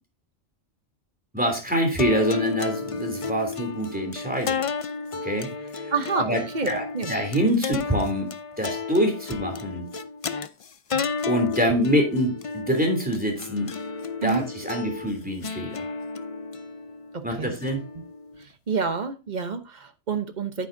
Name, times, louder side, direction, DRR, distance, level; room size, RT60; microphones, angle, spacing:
voice 1, 1.3-4.6 5.2-8.3 8.6-9.8 11.3-13.7 14.2-15.9 17.2-17.8, equal, 5° right, 3.1 m, -25 dB
sound 1, 2.0-18.4, left 5 dB, 50° left, 0.4 m, -32 dB
voice 2, 5.9-6.3 6.5-7.1 14.2-14.4 17.1-17.5 18.7-20.7, right 5 dB, 40° right, 1.0 m, -28 dB
9.6 x 9.0 x 2.7 m
omnidirectional pair, 1.3 m